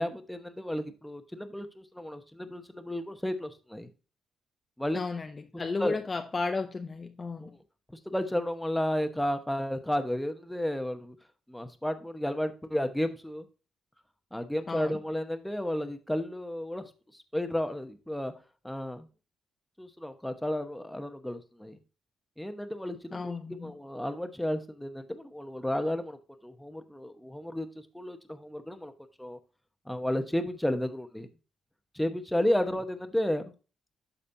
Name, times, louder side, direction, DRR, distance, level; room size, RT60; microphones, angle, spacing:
voice 1, 0.0-3.9 4.8-5.0 5.8-6.0 7.4-7.6 8.1-11.2 11.5-13.5 14.3-18.3 18.6-19.1 19.8-21.8 22.4-27.7 27.9-28.9 29.2-29.4 29.9-31.3 31.9-33.4, left 1 dB, 5° left, 1.0 m, -32 dB
voice 2, 4.9-7.5 14.7-15.0 23.1-23.7, left 4 dB, 30° left, 0.6 m, -34 dB
12.5 x 4.2 x 2.6 m
cardioid pair, 90°, 0 cm